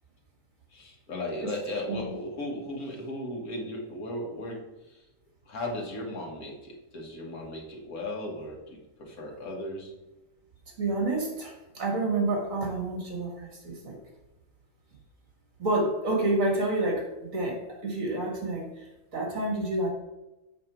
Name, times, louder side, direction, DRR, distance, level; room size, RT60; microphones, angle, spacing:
voice 1, 0.7-5.0 5.5-9.9, left 1 dB, 75° left, 0 dB, 2.0 m, -36 dB
voice 2, 10.8-14.0 15.6-18.9 19.1-19.9, right 2 dB, 60° right, 0 dB, 2.3 m, -29 dB
6.9 x 5.9 x 4.5 m, 1.0 s
omnidirectional pair, 1.6 m